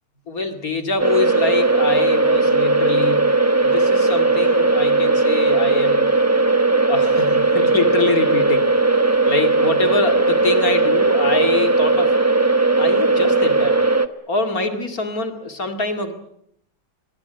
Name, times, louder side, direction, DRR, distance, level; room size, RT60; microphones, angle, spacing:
voice 1, 0.3-3.3 3.6-6.1 6.9-8.7 9.2-12.1 12.8-13.8 14.3-16.1, left 3 dB, 45° left, 6 dB, 2.7 m, -24 dB
sound 1, 1.0-14.1, right 3 dB, 20° right, 0.4 m, -17 dB
23.0 x 22.0 x 9.1 m, 0.73 s
omnidirectional pair, 2.2 m